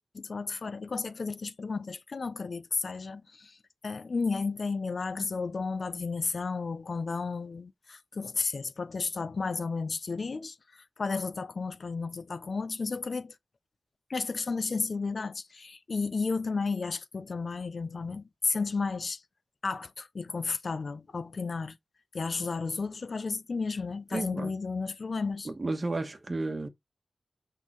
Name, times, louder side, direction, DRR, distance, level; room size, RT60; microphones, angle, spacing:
voice 1, 0.0-3.6 3.8-13.4 14.1-19.2 19.6-21.8 22.1-25.5, left 4 dB, 55° left, 0.6 m, -33 dB
voice 2, 24.1-24.5 25.5-26.7, right 2 dB, 35° right, 1.2 m, -32 dB
8.4 x 3.8 x 3.1 m
wide cardioid pair, 105°, 0 cm